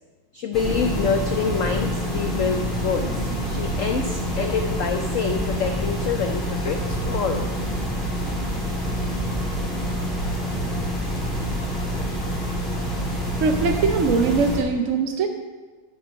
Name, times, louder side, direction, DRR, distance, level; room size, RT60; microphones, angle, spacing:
voice 1, 0.3-7.5, left 6 dB, 90° left, 6 dB, 0.6 m, -26 dB
sound 1, 0.5-14.6, equal, ahead, 2.6 m, -26 dB
voice 2, 13.4-15.3, right 5 dB, 65° right, 5 dB, 0.8 m, -21 dB
10.0 x 6.2 x 6.4 m, 1.4 s
omnidirectional pair, 2.1 m